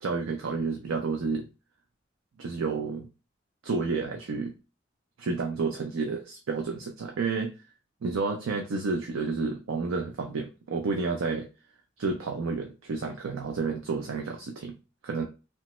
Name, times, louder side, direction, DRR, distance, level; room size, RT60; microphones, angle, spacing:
voice 1, 0.0-1.5 2.4-3.1 3.6-4.5 5.2-7.5 8.0-11.5 12.0-14.8 15.0-15.2, right 4 dB, 85° right, 3 dB, 0.5 m, -30 dB
3.3 x 2.0 x 2.9 m, 0.30 s
head